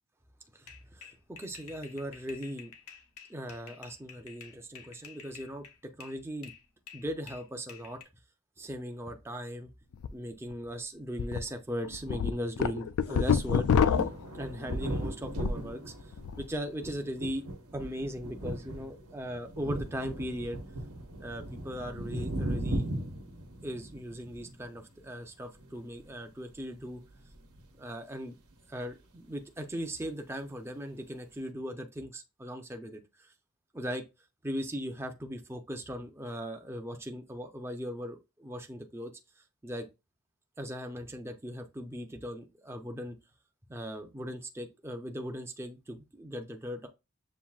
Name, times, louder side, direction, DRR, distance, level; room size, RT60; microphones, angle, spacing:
voice 1, 0.5-2.7 3.3-5.7 6.0-6.5 6.9-8.0 8.6-9.7 10.1-13.9 14.3-17.5 17.7-20.6 21.2-22.9 23.6-27.0 27.8-28.4 28.7-33.3 33.7-34.0 34.4-39.9 40.6-43.2 43.7-46.9, equal, 10° right, 0.5 m, -39 dB
sound 1, 0.7-6.2 6.4-8.0, left 7 dB, 90° left, 0.9 m, -50 dB
sound 2, 9.9-10.1 10.5-10.6 11.2-11.4 11.8-15.7 16.0-16.4, left 7 dB, 75° left, 0.3 m, -27 dB
sound 3, 13.8-25.2 25.6-26.1 26.8-26.9 27.2-27.6, right 1 dB, 90° right, 1.0 m, -38 dB
7.2 x 2.6 x 2.4 m
head